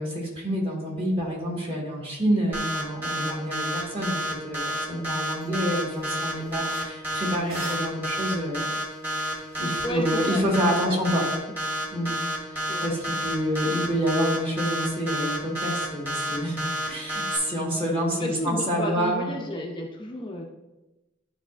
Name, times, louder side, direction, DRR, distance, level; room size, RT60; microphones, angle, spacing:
voice 1, 0.0-8.7 9.2-9.3 9.6-11.2 11.9-12.1 12.5-19.4, equal, 30° right, -3 dB, 1.7 m, -28 dB
sound 1, 2.5-17.4, equal, 10° right, 1.3 m, -29 dB
sound 2, 4.9-5.0 5.3-5.5 5.9-10.6, equal, 55° right, 1.9 m, -46 dB
voice 2, 9.8-10.4 10.8-11.3 12.7-12.9 18.2-20.4, left 1 dB, 25° left, 0 dB, 0.6 m, -32 dB
10.5 x 4.1 x 2.5 m, 1.0 s
head